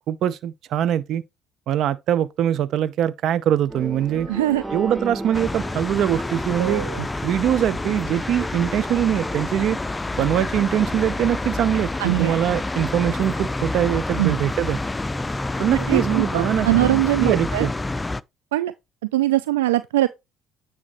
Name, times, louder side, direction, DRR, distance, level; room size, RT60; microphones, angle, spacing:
voice 1, 0.1-1.2 1.7-4.3 4.7-6.8 7.2-9.8 10.2-14.8 15.6-16.9 17.2-17.7, right 10 dB, 65° right, 0.7 m, -22 dB
sound 1, 3.7-9.4, right 1 dB, 10° right, 5.7 m, -35 dB
voice 2, 4.3-4.6 6.6-7.1 12.0-12.4 14.2-14.4 15.7-17.7 18.5-18.7 19.1-20.1, right 16 dB, 90° right, 0.3 m, -22 dB
sound 2, 5.3-18.2, left 2 dB, 15° left, 0.4 m, -28 dB
9.6 x 5.9 x 3.0 m
hypercardioid pair, 65°, 0 cm